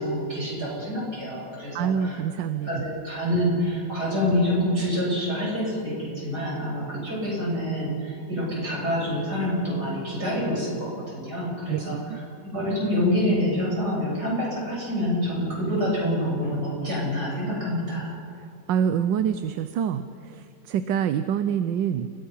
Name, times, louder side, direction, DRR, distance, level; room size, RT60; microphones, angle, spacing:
voice 1, 0.0-2.2 2.6-18.1, equal, 60° right, -4 dB, 8.8 m, -27 dB
voice 2, 1.7-2.8 11.7-12.2 18.7-22.1, right 8 dB, 85° right, 10 dB, 1.4 m, -26 dB
30.0 x 18.0 x 5.7 m, 2.3 s
omnidirectional pair, 1.9 m